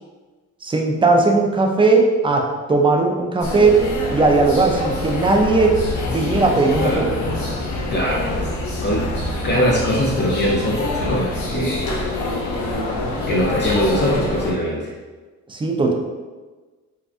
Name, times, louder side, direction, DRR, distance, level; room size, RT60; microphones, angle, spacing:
voice 1, 0.6-3.8 4.1-5.8 6.1-7.1 11.5-11.8 15.5-15.9, right 3 dB, 15° right, 1 dB, 0.4 m, -17 dB
sound 1, 3.4-14.5, left 2 dB, 70° left, 0.7 m, -26 dB
voice 2, 7.9-8.5 8.8-9.1 9.4-11.9 13.3-14.9, equal, 35° left, -3 dB, 0.5 m, -21 dB
3.6 x 2.2 x 2.5 m, 1.3 s
cardioid pair, 90°, 30 cm